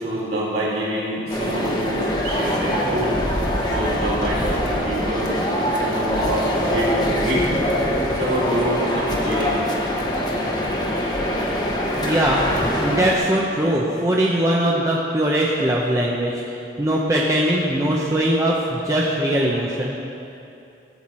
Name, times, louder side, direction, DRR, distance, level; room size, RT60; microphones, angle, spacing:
voice 1, 0.0-3.2 3.6-5.3 5.7-7.5 8.1-9.6, right 1 dB, 55° right, -7 dB, 2.8 m, -26 dB
sound 1, 1.3-13.2, equal, 20° left, 1.0 m, -23 dB
voice 2, 12.0-20.0, right 1 dB, 15° right, -4 dB, 0.6 m, -21 dB
14.0 x 7.9 x 4.3 m, 2.8 s
head